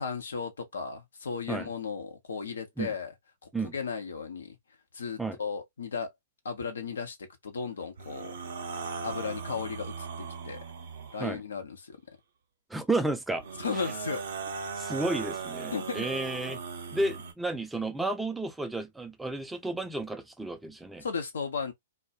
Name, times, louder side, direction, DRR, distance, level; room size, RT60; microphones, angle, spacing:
voice 1, 0.0-3.1 3.4-4.6 4.9-6.1 6.4-8.3 9.0-10.6 11.1-12.0 13.6-14.2 15.7-16.1 21.0-21.7, left 5 dB, 70° left, 0.7 m, -35 dB
sound 1, 8.0-11.4 13.4-17.3, right 5 dB, 60° right, 0.7 m, -38 dB
voice 2, 12.7-13.4 14.8-16.6 16.9-21.0, right 2 dB, 5° right, 0.3 m, -32 dB
2.2 x 2.0 x 2.7 m
figure-of-eight pair, 110°, 0 cm